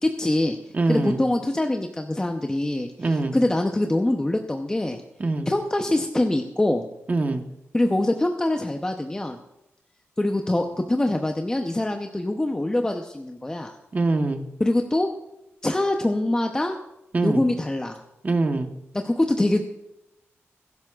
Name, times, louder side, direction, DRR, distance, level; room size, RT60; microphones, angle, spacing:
voice 1, 0.0-0.6 0.9-5.0 5.5-6.9 7.7-9.4 10.2-13.7 14.6-15.1 15.6-16.8 17.2-18.0 18.9-19.6, left 1 dB, 15° left, 4 dB, 0.7 m, -24 dB
voice 2, 0.7-1.2 3.0-3.4 5.2-5.5 7.1-7.4 13.9-14.4 17.1-17.4 18.2-18.7, right 3 dB, 35° right, 6 dB, 1.2 m, -23 dB
21.0 x 11.5 x 2.4 m, 0.88 s
wide cardioid pair, 100°, 5 cm